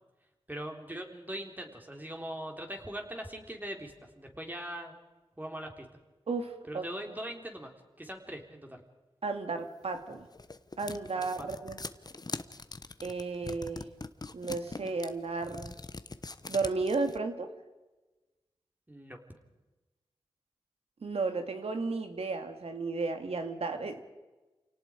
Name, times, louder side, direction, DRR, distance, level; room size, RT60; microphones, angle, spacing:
voice 1, 0.5-5.0 5.4-5.9 6.6-8.8 11.1-11.5 18.9-19.2, right 1 dB, 15° right, 3 dB, 3.7 m, -41 dB
voice 2, 6.3-6.9 9.2-10.3 10.8-11.8 13.0-13.9 14.3-15.8 16.5-17.5 21.0-24.0, right 3 dB, 85° right, 7 dB, 2.1 m, -33 dB
sound 1, 9.9-17.2, left 3 dB, 40° left, 1.1 m, -42 dB
28.5 x 18.5 x 5.1 m, 1.1 s
wide cardioid pair, 55°, 10 cm